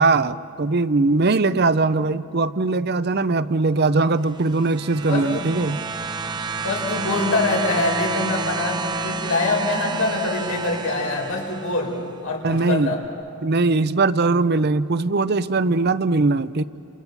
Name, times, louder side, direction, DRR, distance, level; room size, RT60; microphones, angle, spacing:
voice 1, 0.0-5.8 12.4-13.0 13.4-16.6, right 3 dB, 45° right, 14 dB, 0.6 m, -20 dB
sound 1, 4.2-12.0 13.0-13.1, right 3 dB, 20° right, 0.9 m, -30 dB
voice 2, 5.1-5.6 6.6-13.0, left 2 dB, 80° left, 1 dB, 5.4 m, -24 dB
30.0 x 28.0 x 7.2 m, 2.6 s
head